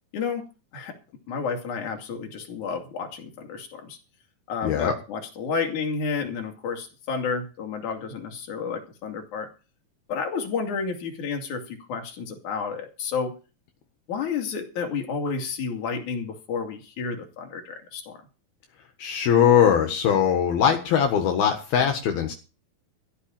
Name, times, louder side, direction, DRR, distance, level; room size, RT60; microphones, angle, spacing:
voice 1, 0.1-0.5 0.7-0.9 1.3-4.0 4.5-9.5 10.1-13.3 14.1-18.2, left 5 dB, 55° left, 3.8 m, -31 dB
voice 2, 4.6-4.9 19.0-22.3, left 8 dB, 75° left, 3.4 m, -21 dB
14.5 x 6.0 x 8.9 m
omnidirectional pair, 4.4 m